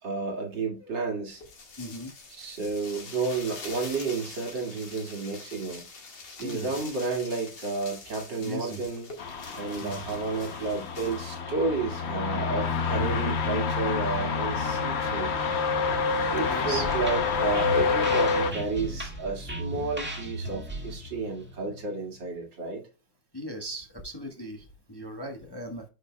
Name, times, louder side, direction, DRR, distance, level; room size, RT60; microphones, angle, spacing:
voice 1, 0.0-1.4 2.3-5.9 6.4-9.1 9.5-15.3 16.3-22.8, right 3 dB, 85° right, 1 dB, 2.8 m, -31 dB
sound 1, 1.3-11.4, left 4 dB, 75° left, 2.6 m, -45 dB
voice 2, 1.8-2.1 6.4-6.7 8.4-8.8 9.8-9.9 13.0-13.2 16.4-16.9 23.3-25.8, right 1 dB, 15° left, 2 dB, 1.0 m, -38 dB
sound 2, 9.2-18.5, left 5 dB, 50° left, 0.9 m, -28 dB
sound 3, 16.6-22.2, right 1 dB, 5° right, 1.6 m, -37 dB
9.8 x 5.6 x 2.2 m, 0.32 s
omnidirectional pair, 1.9 m